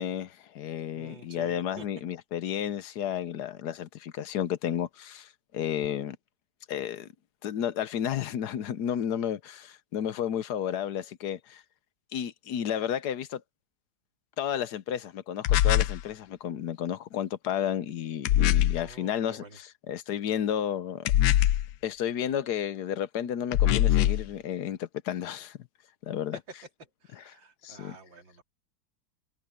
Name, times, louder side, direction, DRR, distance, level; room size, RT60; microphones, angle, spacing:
voice 1, 0.0-6.2 6.7-7.1 7.4-11.6 12.1-13.4 14.4-21.1 21.8-25.6 26.0-26.4 27.2-27.3 27.6-28.0, left 9 dB, 65° left, 1.3 m, -32 dB
voice 2, 0.9-1.9 18.7-19.6 26.3-26.4 27.0-28.4, right 3 dB, 75° right, 3.6 m, -48 dB
sound 1, 15.4-16.0 18.3-18.8 21.1-21.7 23.5-24.3, left 12 dB, 85° left, 1.4 m, -22 dB
omnidirectional pair, 2.1 m